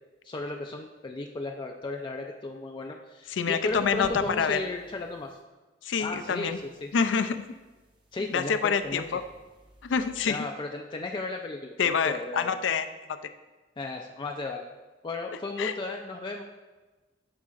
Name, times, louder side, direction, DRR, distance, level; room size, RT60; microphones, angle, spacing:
voice 1, 0.2-5.4 6.0-6.5 6.8-6.9 8.1-9.0 10.2-12.5 13.8-14.7 15.0-16.4, left 2 dB, 25° left, 1 dB, 0.4 m, -35 dB
voice 2, 3.3-4.6 5.8-6.6 6.9-7.4 8.3-9.2 9.8-10.5 11.8-12.9 15.6-15.7, left 6 dB, 85° left, 10 dB, 0.5 m, -26 dB
sound 1, 3.7-5.4 5.9-10.3, equal, 25° right, 0.8 m, -52 dB
11.0 x 4.8 x 2.5 m, 1.2 s
head